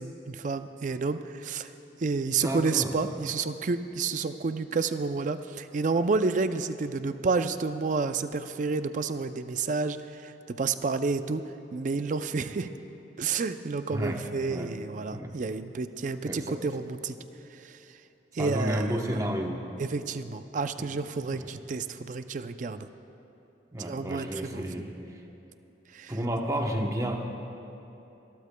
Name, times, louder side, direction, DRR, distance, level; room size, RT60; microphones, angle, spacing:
voice 1, 0.0-1.7 2.0-11.4 11.7-12.7 13.2-17.1 17.6-17.8 18.3-19.2 19.8-22.9 23.9-24.6 25.9-26.1, right 4 dB, 40° right, 10 dB, 0.4 m, -30 dB
voice 2, 2.4-3.0 13.9-14.7 15.1-15.4 16.2-16.6 18.4-19.7 20.8-20.9 21.3-21.6 23.7-25.0 26.1-27.2, equal, 20° right, 2 dB, 0.8 m, -31 dB
28.5 x 13.0 x 2.2 m, 3.0 s
head